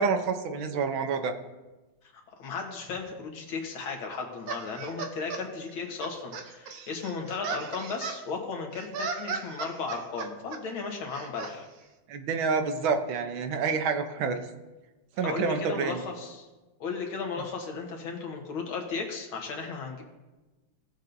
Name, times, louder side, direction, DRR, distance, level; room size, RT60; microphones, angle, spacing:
voice 1, 0.0-1.3 12.1-14.4 15.2-16.0, right 5 dB, 85° right, 7 dB, 1.6 m, -28 dB
voice 2, 2.4-11.7 15.2-16.5 16.8-20.0, left 4 dB, 85° left, 1 dB, 2.2 m, -35 dB
sound 1, 4.5-5.4 6.0-8.2 8.7-10.6 11.1-11.5, right 5 dB, 60° right, 1.1 m, -36 dB
17.5 x 7.3 x 2.6 m, 1.1 s
omnidirectional pair, 2.2 m